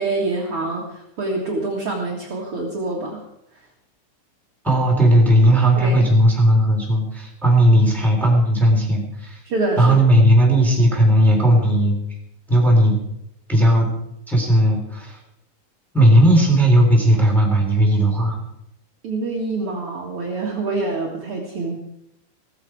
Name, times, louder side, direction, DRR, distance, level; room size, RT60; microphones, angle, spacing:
voice 1, 0.0-3.2 5.8-6.1 9.4-9.8 19.0-21.7, right 3 dB, 65° right, -2 dB, 1.4 m, -26 dB
voice 2, 4.6-9.4 9.8-12.0 12.5-13.0 13.5-13.9 14.3-15.2 15.9-18.4, right 1 dB, ahead, -2 dB, 3.0 m, -16 dB
16.5 x 15.0 x 4.8 m, 0.79 s
omnidirectional pair, 5.7 m